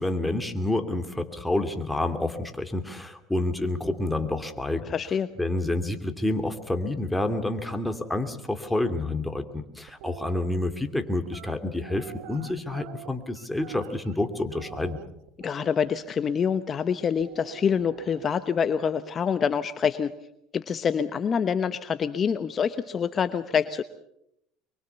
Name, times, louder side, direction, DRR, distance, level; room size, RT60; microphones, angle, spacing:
voice 1, 0.0-4.8 5.4-15.0, left 2 dB, 5° left, 7 dB, 2.6 m, -28 dB
voice 2, 4.9-5.3 15.4-20.1 20.5-23.8, left 7 dB, 35° left, 11 dB, 1.0 m, -26 dB
sound 1, 9.9-10.5 11.3-14.2 14.5-16.0 17.2-18.6, right 13 dB, 80° right, 1.3 m, -45 dB
24.0 x 23.5 x 7.0 m, 0.79 s
supercardioid pair, 110°, 0 cm